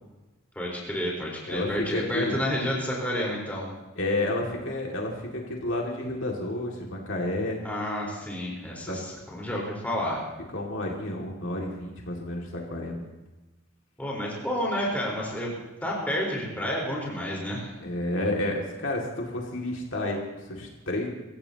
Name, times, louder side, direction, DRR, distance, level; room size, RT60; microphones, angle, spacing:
voice 1, 0.5-3.7 7.6-9.0 9.3-10.2 14.0-15.5 15.8-17.7, equal, 5° left, -4 dB, 4.4 m, -30 dB
voice 2, 1.5-2.4 4.0-7.6 8.9-9.0 10.5-13.0 17.8-21.1, left 1 dB, 60° left, -2 dB, 2.4 m, -30 dB
25.0 x 15.5 x 2.9 m, 1.1 s
head